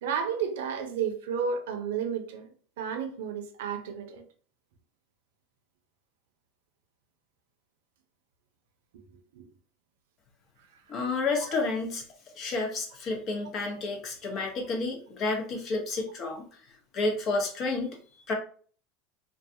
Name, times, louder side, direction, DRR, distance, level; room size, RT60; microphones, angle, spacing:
voice 1, 0.0-2.5 2.8-4.2 9.3-9.5 11.3-11.6, right 7 dB, 80° right, 0.5 m, -32 dB
voice 2, 10.9-12.0 12.3-16.4 16.9-18.3, left 3 dB, 45° left, 0.9 m, -30 dB
2.3 x 2.3 x 2.7 m
hypercardioid pair, 100°, 0 cm